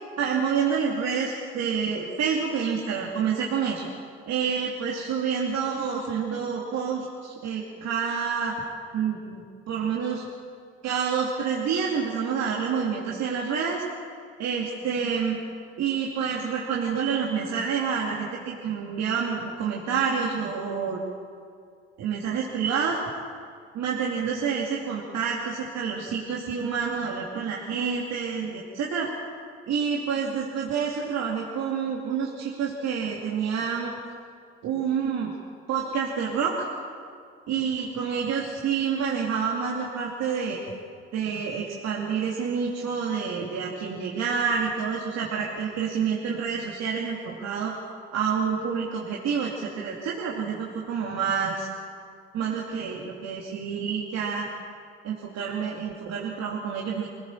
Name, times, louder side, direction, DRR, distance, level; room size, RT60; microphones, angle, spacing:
voice 1, 0.2-3.9 4.3-8.5 8.9-9.4 9.7-10.2 10.8-13.8 14.4-15.4 15.8-21.0 22.0-23.0 23.7-29.1 29.7-33.9 34.6-35.3 35.7-36.6 37.5-40.6 41.1-47.7 48.1-51.7 52.3-54.5 55.0-57.1, right 6 dB, 60° right, -3 dB, 2.8 m, -28 dB
24.0 x 16.5 x 7.4 m, 2.3 s
hypercardioid pair, 65°, 30 cm